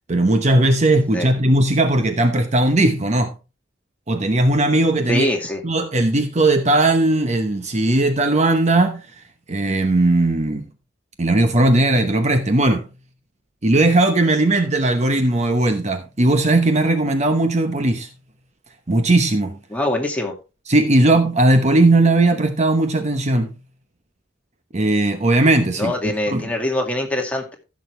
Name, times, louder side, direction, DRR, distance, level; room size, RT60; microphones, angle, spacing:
voice 1, 0.1-3.3 4.1-5.3 5.6-9.0 9.5-10.7 11.2-12.9 13.6-18.1 18.9-19.6 20.7-23.5 24.7-26.5, right 2 dB, 35° right, 1.0 m, -18 dB
voice 2, 5.1-5.6 19.7-20.3 25.8-27.5, left 1 dB, 10° left, 2.1 m, -23 dB
15.5 x 6.5 x 3.3 m
head